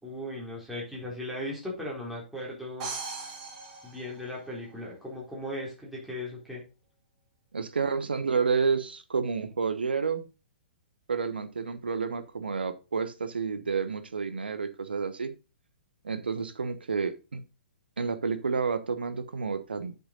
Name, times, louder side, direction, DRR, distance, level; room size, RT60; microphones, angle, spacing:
voice 1, 0.0-2.9 3.8-6.6, left 1 dB, ahead, 4.1 m, -37 dB
sound 1, 2.8-4.8, right 4 dB, 40° right, 3.7 m, -39 dB
voice 2, 7.5-10.2 11.1-15.3 16.0-17.4 18.0-20.0, right 5 dB, 70° right, 1.2 m, -30 dB
8.2 x 6.8 x 4.0 m
figure-of-eight pair, 115°, 6 cm